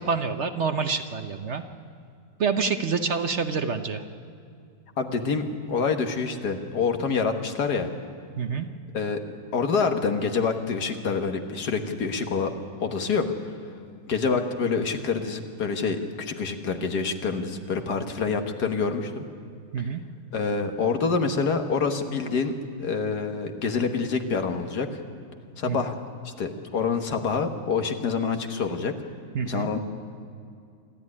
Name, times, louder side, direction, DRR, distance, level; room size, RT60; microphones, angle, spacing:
voice 1, 0.0-1.6 2.4-4.0 8.4-8.7 19.7-20.0 25.7-25.8 29.3-29.7, right 5 dB, 50° right, 7 dB, 1.0 m, -27 dB
voice 2, 5.0-7.9 8.9-9.2 9.5-12.5 12.8-13.3 14.1-19.3 20.3-22.5 22.8-25.0 25.6-26.0 26.2-28.9 29.5-29.8, left 5 dB, 65° left, 6 dB, 2.0 m, -26 dB
27.5 x 12.5 x 9.8 m, 2.3 s
omnidirectional pair, 1.9 m